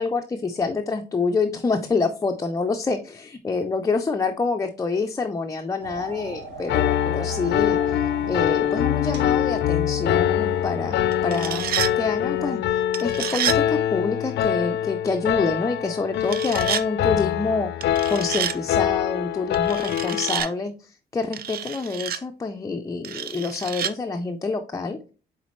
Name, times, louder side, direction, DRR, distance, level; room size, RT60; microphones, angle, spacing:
voice 1, 0.0-8.0 8.3-11.6 12.0-25.1, left 4 dB, 20° left, 4 dB, 0.4 m, -27 dB
sound 1, 5.8-12.6, right 3 dB, 80° right, 1.9 m, -38 dB
Piano, 6.7-20.4, left 11 dB, 80° left, 0.4 m, -24 dB
sound 2, 11.1-11.9 12.9-13.6 16.2-16.8 17.8-18.6 19.5-20.5 21.3-22.2 23.0-23.9, right 9 dB, 60° right, 0.5 m, -29 dB
8.2 x 4.0 x 3.0 m, 0.36 s
wide cardioid pair, 155°, 18 cm